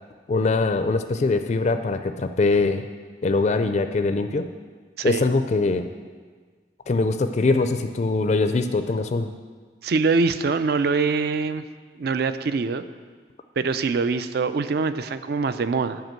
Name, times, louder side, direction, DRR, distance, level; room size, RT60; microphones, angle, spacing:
voice 1, 0.3-2.9 3.2-4.5 5.0-5.9 6.9-9.3, left 3 dB, 40° left, 9 dB, 0.4 m, -22 dB
voice 2, 5.0-5.3 9.8-11.6 12.0-12.8 13.6-16.0, right 4 dB, 60° right, 11 dB, 0.4 m, -24 dB
8.0 x 5.1 x 7.5 m, 1.5 s
head